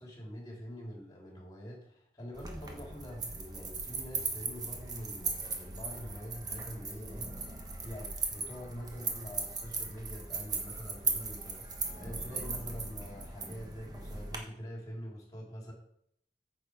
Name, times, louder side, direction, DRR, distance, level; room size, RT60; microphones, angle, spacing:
voice 1, 0.0-7.3 7.8-15.7, equal, 20° left, -1 dB, 3.1 m, -45 dB
sound 1, 2.3-14.4, right 4 dB, 20° right, 1.2 m, -38 dB
9.5 x 6.6 x 4.9 m, 0.69 s
head